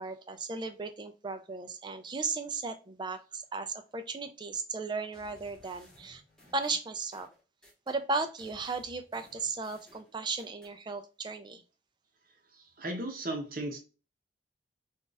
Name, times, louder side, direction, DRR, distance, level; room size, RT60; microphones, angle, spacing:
voice 1, 0.0-6.2 6.5-7.3 7.9-11.6, right 4 dB, 25° right, 0.4 m, -36 dB
sound 1, 5.1-8.0 8.4-10.7, left 1 dB, 5° left, 1.2 m, -59 dB
voice 2, 12.5-13.8, right 1 dB, 50° right, 0.8 m, -36 dB
3.9 x 2.4 x 2.4 m
head